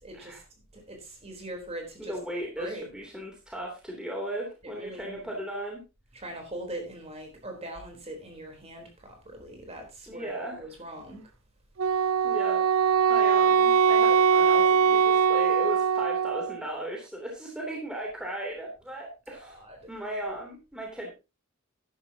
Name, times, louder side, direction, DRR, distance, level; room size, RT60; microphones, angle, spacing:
voice 1, 0.0-0.4 0.7-2.1 2.6-2.9 4.6-5.4 6.1-11.3 19.3-19.9, right 1 dB, 30° right, 4.0 m, -41 dB
voice 2, 2.0-5.8 10.1-10.6 12.2-12.6 13.1-19.6 19.9-21.1, right 1 dB, 5° right, 3.2 m, -36 dB
Wind instrument woodwind instrument, 11.8-16.6, right 7 dB, 85° right, 0.6 m, -22 dB
13.5 x 11.5 x 2.9 m
head